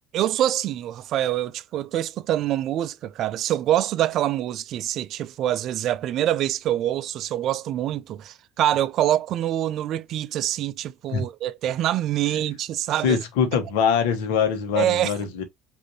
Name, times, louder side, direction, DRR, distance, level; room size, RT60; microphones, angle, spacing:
voice 1, 0.1-13.2 14.7-15.1, right 12 dB, 50° right, 0.3 m, -25 dB
voice 2, 13.0-15.4, left 7 dB, 65° left, 1.0 m, -23 dB
5.1 x 2.6 x 2.7 m
figure-of-eight pair, 60°, 0 cm